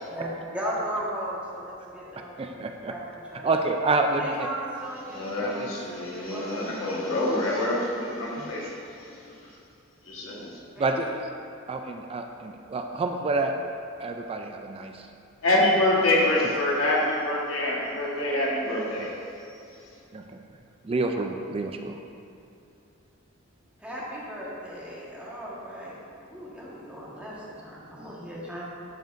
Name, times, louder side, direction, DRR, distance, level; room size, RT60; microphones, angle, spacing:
voice 1, 0.1-2.5 2.9-3.5 4.2-7.2 10.7-11.2 23.8-28.6, equal, 5° right, -7 dB, 1.4 m, -37 dB
voice 2, 2.4-2.9 3.4-4.5 5.4-5.7 8.3-8.5 10.8-11.3 11.7-13.6 14.0-15.1 20.1-20.2 20.8-22.0, right 3 dB, 30° right, 4 dB, 0.3 m, -28 dB
voice 3, 5.1-9.5 10.1-10.6 15.4-19.1 19.5-19.8, left 1 dB, 85° left, -4 dB, 1.4 m, -26 dB
12.0 x 5.2 x 2.6 m, 2.6 s
head